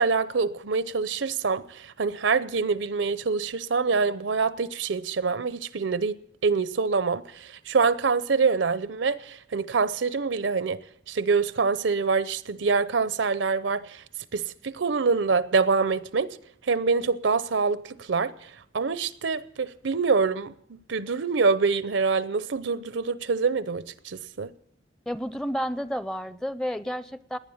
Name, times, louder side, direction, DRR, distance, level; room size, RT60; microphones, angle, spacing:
voice 1, 0.0-10.8 11.1-14.0 14.3-16.4 16.7-24.5, right 4 dB, 85° right, 0.7 m, -25 dB
voice 2, 25.1-27.4, equal, 5° left, 0.5 m, -31 dB
18.5 x 10.0 x 7.2 m
head